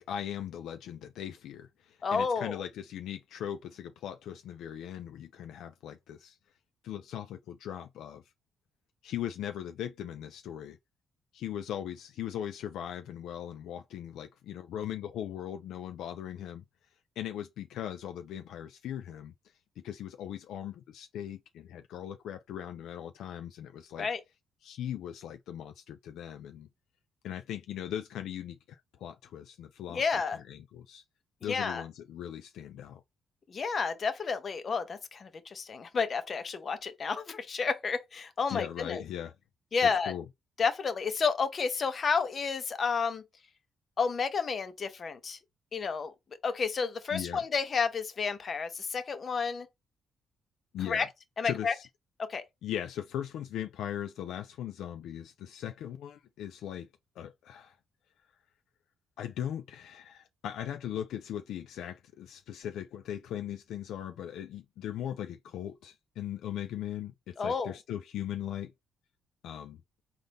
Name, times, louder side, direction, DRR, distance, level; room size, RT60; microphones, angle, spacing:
voice 1, 0.0-6.4 6.8-8.2 9.0-10.8 11.3-16.6 17.2-19.3 19.8-24.1 24.6-26.7 27.2-30.0 30.3-31.0 31.4-33.0 38.5-39.4 39.8-40.2 47.1-47.4 50.7-51.1 51.4-51.8 52.6-56.9 57.2-57.7 59.2-68.7 69.4-69.8, left 10 dB, 80° left, 0.3 m, -39 dB
voice 2, 2.0-2.6 24.0-24.2 29.9-30.4 31.4-31.8 33.5-39.0 39.7-40.1 40.6-43.2 44.0-45.4 45.7-46.1 46.4-49.7 50.9-51.1 51.4-51.7 52.3-52.4 67.4-67.7, left 5 dB, 45° left, 0.7 m, -31 dB
4.0 x 2.5 x 3.5 m
cardioid pair, 90°, 0 cm